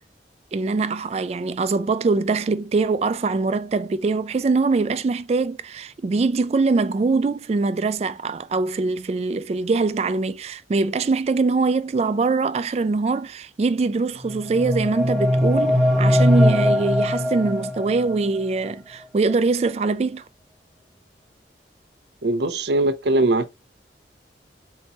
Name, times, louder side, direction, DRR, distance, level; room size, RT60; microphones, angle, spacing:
voice 1, 0.5-20.2, right 3 dB, 35° right, 0.3 m, -23 dB
sound 1, 14.2-18.2, left 1 dB, ahead, 0.7 m, -20 dB
voice 2, 22.2-23.5, right 2 dB, 70° right, 0.7 m, -20 dB
4.5 x 3.0 x 4.0 m
head